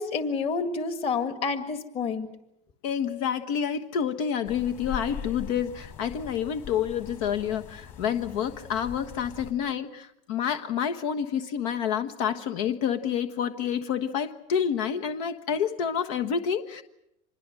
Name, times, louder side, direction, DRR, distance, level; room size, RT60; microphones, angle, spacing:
voice 1, 0.0-2.3, left 5 dB, 40° left, 8 dB, 2.0 m, -29 dB
voice 2, 2.8-16.8, left 8 dB, 85° left, 7 dB, 1.3 m, -28 dB
sound 1, 4.4-9.5, left 7 dB, 60° left, 5.2 m, -41 dB
26.0 x 21.5 x 7.7 m, 0.81 s
cardioid pair, 150°, 16 cm